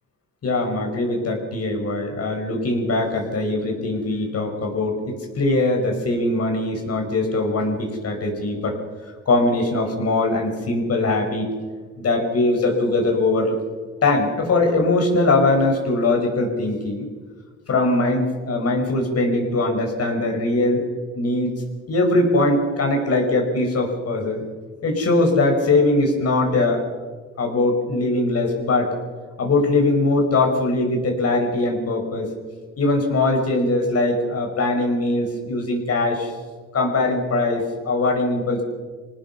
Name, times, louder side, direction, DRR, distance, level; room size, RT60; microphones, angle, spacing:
voice 1, 0.4-8.7 9.0-11.5 12.0-13.5 14.0-17.1 17.7-20.8 21.1-21.6 21.9-24.4 24.8-26.8 27.4-29.0 29.4-32.3 32.8-36.3 36.7-38.6, left 2 dB, 55° left, 2 dB, 6.4 m, -21 dB
28.0 x 18.5 x 5.8 m, 1.5 s
cardioid pair, 90°, 30 cm